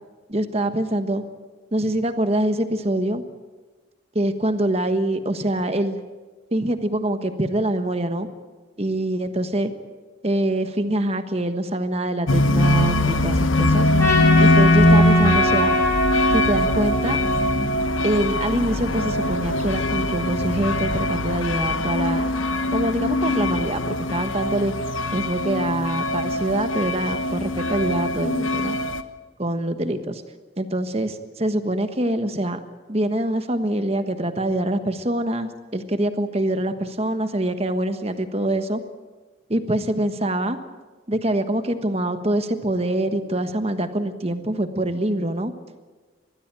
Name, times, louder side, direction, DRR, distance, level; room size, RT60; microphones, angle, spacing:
voice 1, 0.3-1.2 1.7-3.3 4.1-6.0 6.5-8.3 8.8-9.7 10.2-13.9 14.4-15.7 16.3-17.2 18.0-22.3 22.7-24.7 25.1-28.8 29.4-30.2 30.6-32.6 32.9-38.8 39.5-40.6 41.1-45.5, right 1 dB, 30° right, 8 dB, 1.3 m, -24 dB
sound 1, 12.3-29.0, left 1 dB, 80° left, 1.2 m, -21 dB
Trumpet, 14.0-18.4, left 1 dB, 15° left, 5.5 m, -25 dB
21.5 x 15.5 x 9.0 m, 1.3 s
head